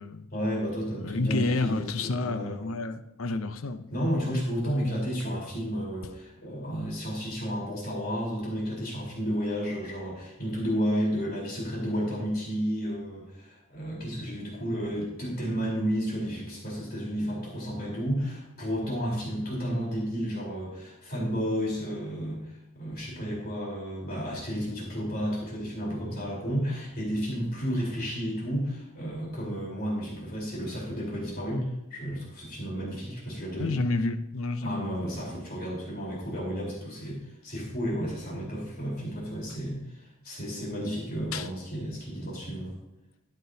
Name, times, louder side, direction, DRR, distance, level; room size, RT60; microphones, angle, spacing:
voice 1, 0.3-2.6 3.9-33.8 34.6-42.8, equal, 45° left, -4 dB, 4.0 m, -32 dB
voice 2, 1.0-3.9 33.6-35.0 41.3-41.5, left 2 dB, 70° left, 10 dB, 0.6 m, -30 dB
13.0 x 9.0 x 2.8 m, 0.87 s
head